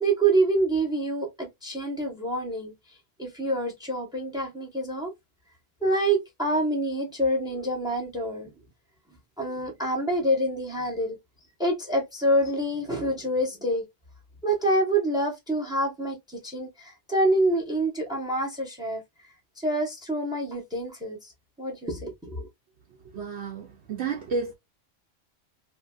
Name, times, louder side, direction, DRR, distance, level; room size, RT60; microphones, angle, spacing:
voice 1, 0.0-2.7 3.2-5.1 5.8-8.5 9.4-11.2 11.6-13.9 14.4-19.0 19.6-21.3 21.6-22.5, right 1 dB, 5° right, 0.8 m, -26 dB
voice 2, 23.1-24.5, right 4 dB, 70° right, 0.9 m, -31 dB
2.9 x 2.5 x 2.3 m
omnidirectional pair, 1.2 m